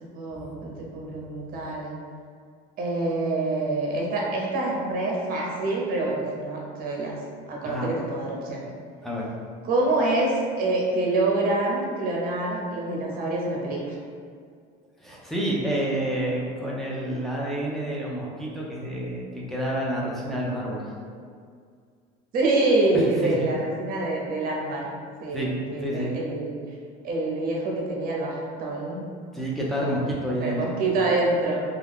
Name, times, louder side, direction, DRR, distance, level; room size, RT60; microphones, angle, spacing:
voice 1, 0.1-1.9 2.8-7.2 7.5-8.6 9.6-14.0 22.3-24.8 25.2-26.5 27.0-29.0 29.8-30.1 30.4-31.6, right 2 dB, 50° right, -2 dB, 0.8 m, -26 dB
voice 2, 7.6-7.9 9.0-9.3 15.0-20.8 22.9-23.3 25.3-25.5 25.8-26.1 29.3-30.7, right 1 dB, ahead, -5 dB, 0.5 m, -29 dB
2.4 x 2.2 x 3.4 m, 2.1 s
supercardioid pair, 115°, 20 cm